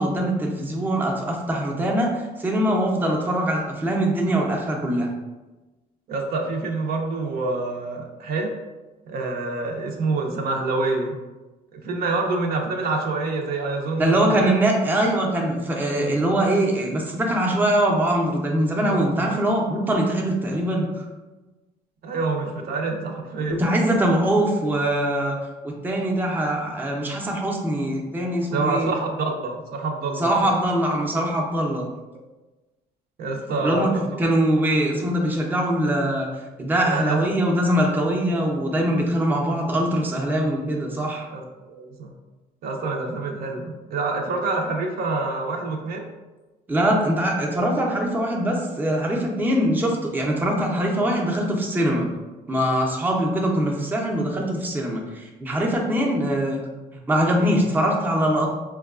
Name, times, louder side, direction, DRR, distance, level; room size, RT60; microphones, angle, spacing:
voice 1, 0.0-5.1 14.0-21.1 23.5-25.4 25.6-29.0 30.2-31.8 33.6-33.9 34.2-36.3 36.6-41.2 46.7-52.1 52.5-56.6 57.1-58.5, right 1 dB, 10° right, -1 dB, 0.5 m, -22 dB
voice 2, 6.1-8.5 9.1-11.2 11.7-14.5 18.9-19.4 22.0-23.6 28.5-30.5 33.2-34.2 36.8-37.2 41.3-42.1 42.6-46.1, right 3 dB, 65° right, 2 dB, 0.6 m, -27 dB
4.6 x 2.2 x 2.3 m, 1.2 s
cardioid pair, 110°, 17 cm